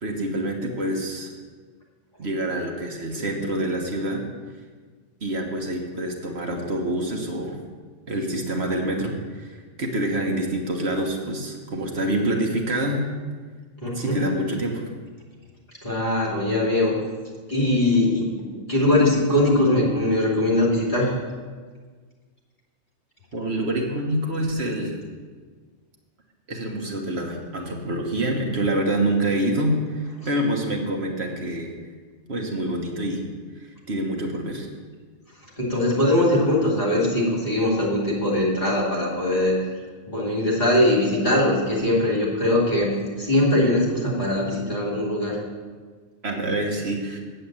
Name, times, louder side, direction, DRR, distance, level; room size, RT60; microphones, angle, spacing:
voice 1, 0.0-1.3 2.2-4.2 5.2-7.6 8.1-13.0 13.9-14.8 23.3-25.0 26.5-31.7 32.3-33.3 33.6-34.7 46.2-47.2, right 1 dB, 60° right, 1 dB, 1.6 m, -26 dB
voice 2, 13.8-14.2 15.8-16.9 17.5-21.1 35.6-39.6 40.1-42.9 43.2-45.4, left 1 dB, 40° left, -3 dB, 2.7 m, -21 dB
7.8 x 7.7 x 8.7 m, 1.5 s
omnidirectional pair, 1.3 m